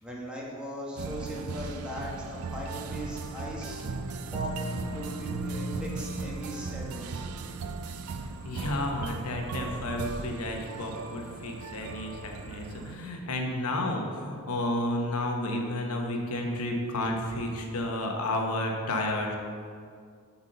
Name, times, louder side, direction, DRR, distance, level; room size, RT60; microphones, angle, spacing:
voice 1, 0.0-4.1 4.3-7.3, equal, 5° right, -4 dB, 1.2 m, -39 dB
sound 1, 1.0-12.9, right 3 dB, 75° right, 0.4 m, -37 dB
voice 2, 8.4-19.4, left 1 dB, 80° left, 1 dB, 1.0 m, -31 dB
7.0 x 4.2 x 6.6 m, 2.2 s
head